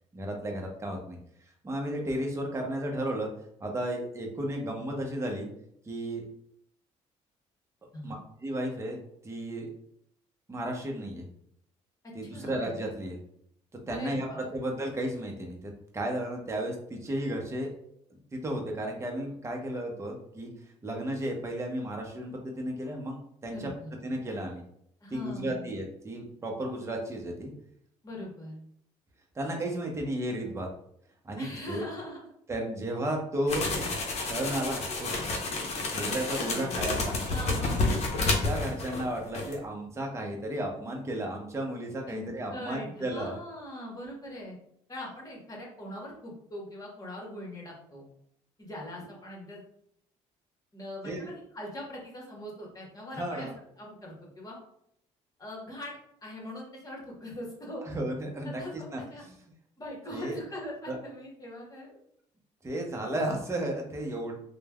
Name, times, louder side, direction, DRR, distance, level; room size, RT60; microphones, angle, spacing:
voice 1, 0.1-1.2 1.6-3.3 3.6-5.5 5.8-6.2 8.0-8.2 8.4-9.7 10.5-11.3 12.1-13.2 13.9-17.7 18.3-20.5 20.8-23.7 24.0-24.6 25.1-27.5 29.3-30.7 31.2-31.8 32.5-33.7 34.2-35.1 35.9-37.2 38.2-43.4 51.0-51.3 53.1-53.5 57.8-59.4 60.1-60.4 60.9-61.0 62.6-64.3, right 1 dB, 20° right, 1 dB, 0.7 m, -33 dB
voice 2, 12.2-12.5 13.9-14.4 23.5-24.0 25.0-25.7 28.0-28.6 31.4-32.3 36.5-36.8 37.3-38.1 42.1-44.6 44.9-48.1 48.6-49.6 50.7-53.5 53.8-54.6 55.4-57.9 58.4-59.2 59.8-61.9, left 1 dB, 25° left, -2 dB, 1.2 m, -41 dB
sound 1, 33.5-39.1 39.3-39.5, left 3 dB, 55° left, 0.7 m, -30 dB
3.1 x 2.2 x 2.3 m, 0.70 s
supercardioid pair, 75°, 13 cm